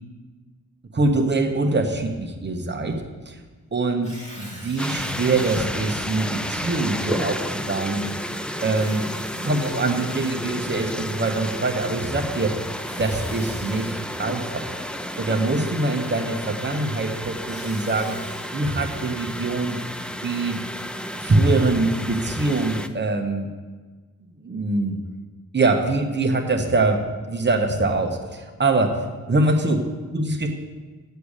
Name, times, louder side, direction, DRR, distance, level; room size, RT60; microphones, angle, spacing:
voice 1, 0.9-3.4 3.7-8.0 8.6-9.1 9.4-12.6 13.0-14.9 15.1-18.2 18.5-19.8 20.2-20.6 21.2-23.5 24.4-25.0 25.5-29.8 30.1-30.5, right 2 dB, 30° right, 3 dB, 1.0 m, -23 dB
Tearing, 3.9-5.6 6.3-6.4 8.6-10.8 12.6-13.9 17.1-18.5, equal, 20° left, 1.9 m, -44 dB
sound 1, 4.8-22.9, equal, 5° left, 0.3 m, -32 dB
8.5 x 6.8 x 6.5 m, 1.4 s
wide cardioid pair, 165°, 34 cm